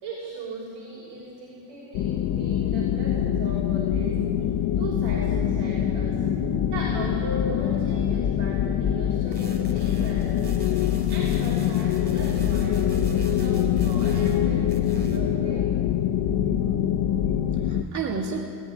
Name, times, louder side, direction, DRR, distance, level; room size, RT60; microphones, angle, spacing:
voice 1, 0.0-4.2 4.8-6.2 6.6-10.7 11.1-15.7, right 2 dB, 85° right, -5 dB, 6.2 m, -38 dB
sound 1, 1.9-17.8, left 10 dB, 65° left, 0.9 m, -24 dB
sound 2, 9.3-14.4 14.7-15.3, right 2 dB, 25° right, 3.0 m, -43 dB
voice 2, 17.1-18.4, right 5 dB, 40° right, 0 dB, 2.2 m, -34 dB
19.0 x 14.5 x 10.0 m, 2.4 s
cardioid pair, 170°, 42 cm